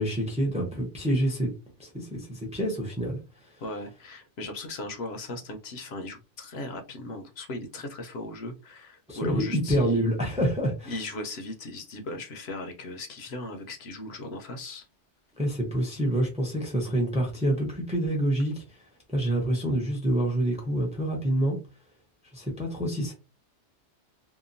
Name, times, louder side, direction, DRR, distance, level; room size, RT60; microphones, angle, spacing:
voice 1, 0.0-1.5 1.8-3.2 9.1-10.9 15.4-18.6 19.1-21.6 22.3-23.1, right 1 dB, 5° right, 0.6 m, -27 dB
voice 2, 3.6-10.0 10.9-14.9, left 2 dB, 65° left, 0.8 m, -38 dB
2.8 x 2.2 x 2.5 m
omnidirectional pair, 1.2 m